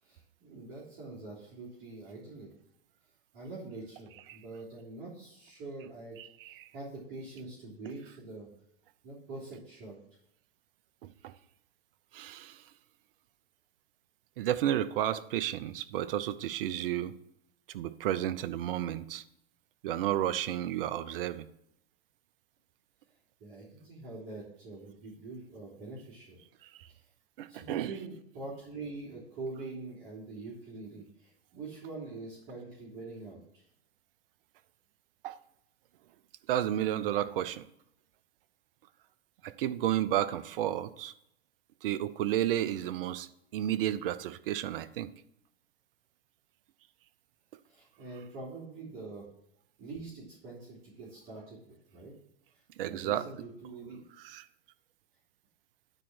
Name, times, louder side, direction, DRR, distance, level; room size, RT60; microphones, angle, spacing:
voice 1, 0.0-2.5 3.3-8.5 9.0-10.0 23.4-26.4 26.9-27.0 27.5-33.6 47.7-49.2 49.8-52.1 52.8-54.0, right 3 dB, 45° right, -6 dB, 3.2 m, -44 dB
voice 2, 6.2-6.7 11.0-11.3 12.1-12.6 14.4-17.1 17.7-19.2 19.8-21.5 26.7-26.8 27.4-27.9 35.2-35.4 36.5-37.6 39.4-41.1 41.8-43.3 43.5-45.1 52.8-53.3 54.2-54.4, right 12 dB, 65° right, 15 dB, 0.6 m, -32 dB
10.0 x 4.4 x 6.1 m, 0.77 s
hypercardioid pair, 105°, 30 cm